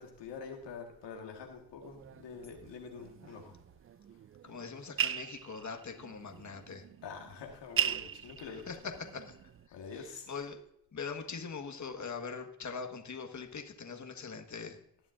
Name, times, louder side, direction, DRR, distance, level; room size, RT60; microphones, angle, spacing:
voice 1, 0.0-3.5 7.0-8.6 9.7-10.3, left 5 dB, 80° left, 1.7 m, -46 dB
sound 1, 1.8-9.7, right 9 dB, 35° right, 0.4 m, -39 dB
voice 2, 4.4-6.9 8.7-8.8 9.1-10.6 10.9-14.8, left 5 dB, 45° left, 1.5 m, -42 dB
19.5 x 7.0 x 2.5 m
supercardioid pair, 45°, 42 cm